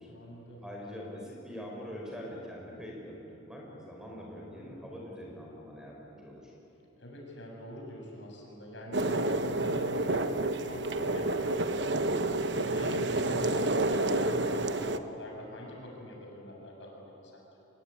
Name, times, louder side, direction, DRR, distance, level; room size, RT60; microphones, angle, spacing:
voice 1, 0.1-0.7 7.0-17.6, left 1 dB, 70° left, 0 dB, 6.8 m, -44 dB
voice 2, 0.6-6.5, equal, 5° right, -2 dB, 5.2 m, -43 dB
sound 1, 8.9-15.0, right 2 dB, 65° right, 1.0 m, -29 dB
25.5 x 21.5 x 9.4 m, 2.9 s
head